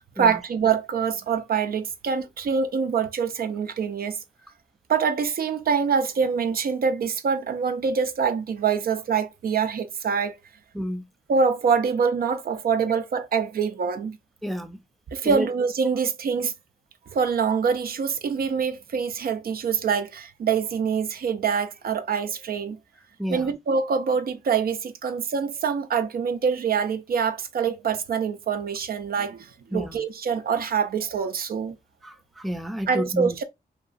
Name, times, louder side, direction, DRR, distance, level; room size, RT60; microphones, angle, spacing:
voice 1, 0.2-4.2 4.9-10.4 11.3-14.2 15.1-16.5 17.1-22.8 23.3-31.8 32.9-33.4, right 6 dB, 75° right, 0.4 m, -25 dB
voice 2, 10.7-11.0 14.4-14.8 15.2-15.5 23.2-23.5 29.7-30.0 32.0-33.4, equal, ahead, 0.4 m, -30 dB
2.8 x 2.3 x 2.4 m
cardioid pair, 70°, 16 cm